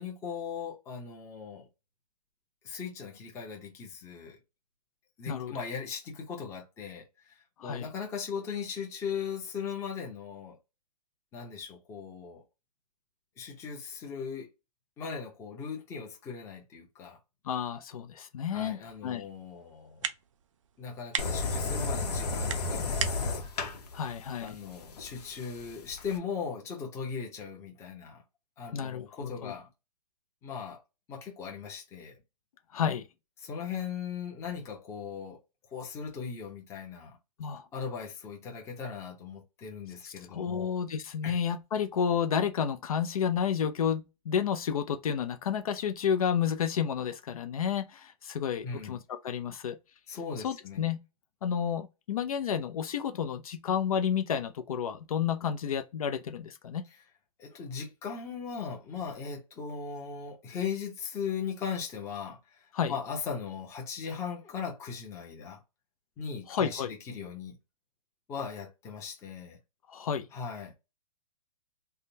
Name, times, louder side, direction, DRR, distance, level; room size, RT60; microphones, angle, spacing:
voice 1, 0.0-1.7 2.6-4.4 5.2-7.4 7.6-10.6 11.3-12.4 13.4-14.5 15.0-17.2 18.5-20.0 20.8-23.5 24.4-28.2 28.6-29.7 30.4-30.8 31.1-32.2 33.4-35.4 35.7-37.1 37.7-40.7 41.2-41.4 48.6-49.0 50.1-50.9 57.4-65.6 66.2-67.5 68.3-69.6 70.3-70.7, left 6 dB, 15° left, 0.8 m, -38 dB
voice 2, 5.3-5.6 7.6-7.9 17.5-19.2 23.9-24.6 28.7-29.5 32.7-33.0 37.4-37.7 40.0-49.8 50.4-51.0 51.4-56.8 62.7-62.9 66.5-66.9 69.9-70.3, left 8 dB, 60° left, 0.5 m, -31 dB
sound 1, 18.8-25.6, right 9 dB, 50° right, 0.4 m, -41 dB
sound 2, 21.2-26.2, left 3 dB, 80° left, 0.9 m, -33 dB
3.5 x 2.2 x 2.7 m
hypercardioid pair, 155°, 20 cm